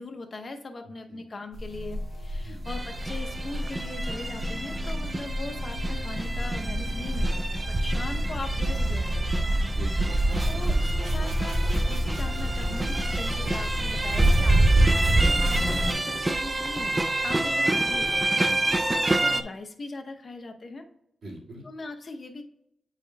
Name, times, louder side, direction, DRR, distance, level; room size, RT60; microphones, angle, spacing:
voice 1, 0.0-9.6 10.5-20.9 21.6-22.4, left 3 dB, 45° left, 5 dB, 0.7 m, -40 dB
sound 1, 1.5-15.9, equal, 50° right, 2.1 m, -31 dB
sound 2, 1.7-10.8, left 4 dB, 75° left, 0.7 m, -46 dB
sound 3, 2.7-19.4, right 2 dB, 20° right, 0.3 m, -26 dB
voice 2, 7.9-8.2 9.6-10.4 17.4-17.5 18.4-19.0 21.2-21.6, right 1 dB, 75° right, -4 dB, 1.9 m, -44 dB
8.7 x 4.9 x 2.2 m, 0.77 s
cardioid pair, 95°, 0 cm